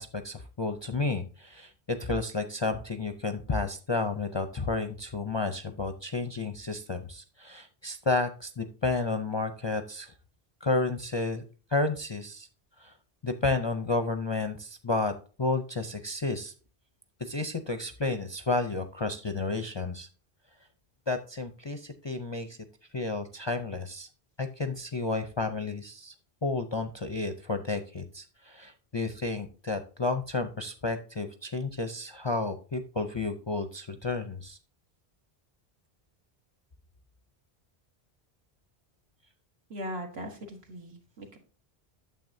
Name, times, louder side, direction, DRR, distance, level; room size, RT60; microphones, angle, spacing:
voice 1, 0.0-10.1 10.6-11.4 11.7-12.5 12.8-12.9 13.2-15.1 15.4-16.5 17.2-20.1 21.1-22.6 22.9-24.1 24.4-26.1 26.4-34.6, left 3 dB, 35° left, 7 dB, 0.5 m, -31 dB
voice 2, 39.7-41.4, equal, 75° right, 2 dB, 1.8 m, -39 dB
9.1 x 7.1 x 2.6 m, 0.37 s
omnidirectional pair, 1.1 m